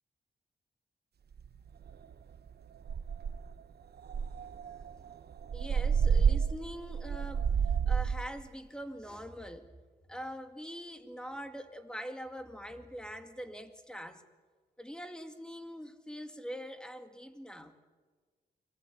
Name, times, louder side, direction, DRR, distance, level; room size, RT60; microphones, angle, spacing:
sound 1, 1.4-1.5 1.9-2.1 2.5-2.6 2.9-3.5 4.1-8.3, right 6 dB, 70° right, 1.0 m, -29 dB
voice 1, 5.5-7.5 7.9-9.7 10.1-14.2 14.8-17.8, equal, 5° left, 2.2 m, -43 dB
29.5 x 23.0 x 8.4 m
wide cardioid pair, 110°, 17 cm